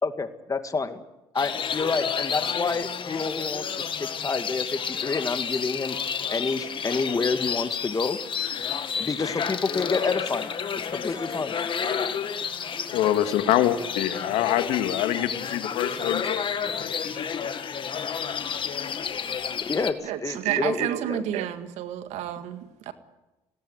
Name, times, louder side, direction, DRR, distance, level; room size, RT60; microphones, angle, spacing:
voice 1, 0.0-1.0 1.3-3.7 4.0-6.0 6.3-8.2 9.0-10.5 10.9-11.5 19.7-21.2, left 4 dB, 30° left, 9 dB, 2.1 m, -28 dB
sound 1, 1.4-19.9, left 7 dB, 45° left, 1.8 m, -31 dB
Trumpet, 9.2-14.4, left 1 dB, 10° left, 6.6 m, -48 dB
voice 2, 12.9-17.5, left 12 dB, 80° left, 9 dB, 1.8 m, -26 dB
voice 3, 20.0-22.9, right 11 dB, 80° right, 9 dB, 1.9 m, -30 dB
20.5 x 17.5 x 9.6 m, 1.0 s
supercardioid pair, 75°, 11 cm